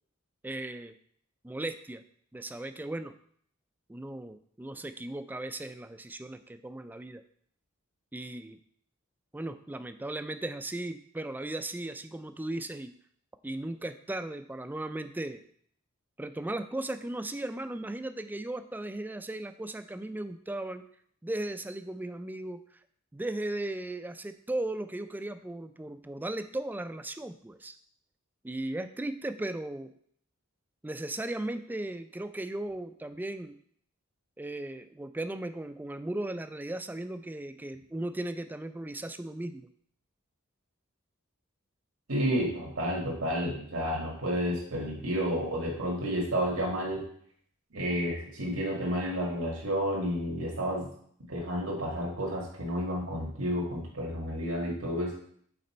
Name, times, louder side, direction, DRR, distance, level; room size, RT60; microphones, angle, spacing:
voice 1, 0.4-0.9 1.4-2.0 2.3-3.1 3.9-7.2 8.1-8.6 9.3-12.9 13.4-15.4 16.2-20.8 21.2-22.8 23.1-27.8 28.4-29.9 30.8-33.6 34.4-39.7, right 1 dB, 10° right, 9 dB, 0.3 m, -36 dB
voice 2, 42.1-47.0 47.7-50.9 51.3-55.1, equal, 90° right, -4 dB, 1.8 m, -31 dB
6.6 x 4.3 x 4.3 m, 0.62 s
head